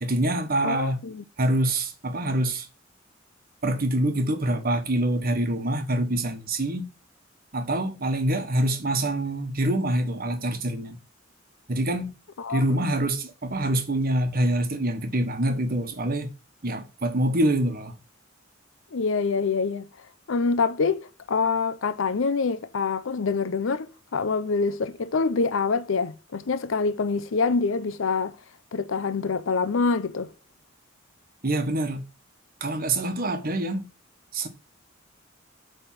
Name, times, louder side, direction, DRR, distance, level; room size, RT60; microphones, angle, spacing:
voice 1, 0.0-1.0 1.4-2.7 3.6-6.9 7.5-11.0 11.7-12.1 12.5-16.3 16.6-18.0 31.4-32.0 32.6-33.9 34.3-34.5, right 1 dB, 45° right, 1.2 m, -25 dB
voice 2, 0.6-1.2 12.4-12.6 18.9-19.9 20.3-28.4 28.7-30.3, left 4 dB, 70° left, 0.6 m, -25 dB
8.2 x 3.5 x 5.9 m
head